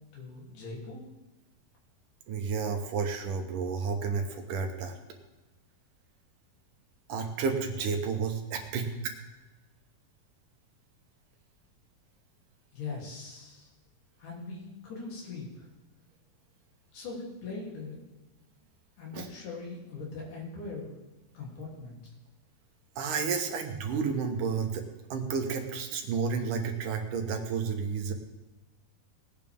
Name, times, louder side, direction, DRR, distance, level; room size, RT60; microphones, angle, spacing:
voice 1, 0.1-1.0 12.7-13.7 14.2-15.7 16.9-18.0 19.0-20.9 21.3-22.1, left 3 dB, 60° left, -4 dB, 4.6 m, -41 dB
voice 2, 2.3-5.0 7.1-9.1 19.1-19.3 23.0-24.9 25.1-28.1, right 5 dB, 70° right, 4 dB, 2.6 m, -31 dB
19.0 x 9.2 x 3.6 m, 1.2 s
omnidirectional pair, 4.0 m